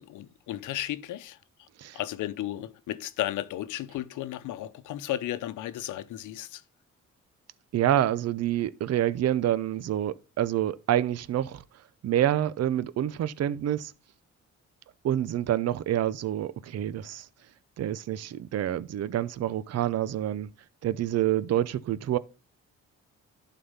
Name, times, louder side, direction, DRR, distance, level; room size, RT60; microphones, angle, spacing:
voice 1, 0.0-1.4 1.9-6.6, left 13 dB, 85° left, 0.8 m, -34 dB
voice 2, 7.7-11.6 12.0-13.9 15.0-17.3 17.8-20.5 20.8-22.2, right 11 dB, 55° right, 0.7 m, -27 dB
11.5 x 4.3 x 5.5 m
cardioid pair, 90°, 30 cm